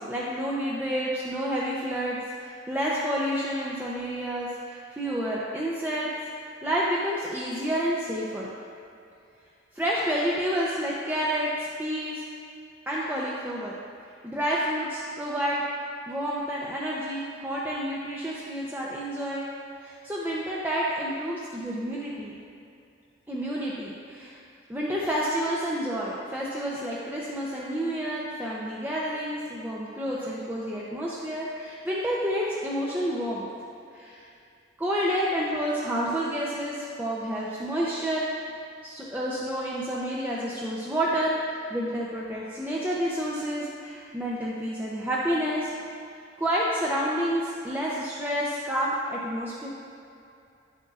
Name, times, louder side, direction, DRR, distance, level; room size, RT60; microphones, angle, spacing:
voice 1, 0.0-6.1 6.4-8.5 9.7-12.2 12.9-13.7 14.2-15.6 16.1-19.5 19.8-22.4 23.3-24.4 24.7-33.5 33.9-34.3 34.8-38.3 38.8-45.7 46.4-49.7, equal, 10° right, -6 dB, 0.6 m, -29 dB
9.5 x 7.9 x 2.4 m, 2.6 s
head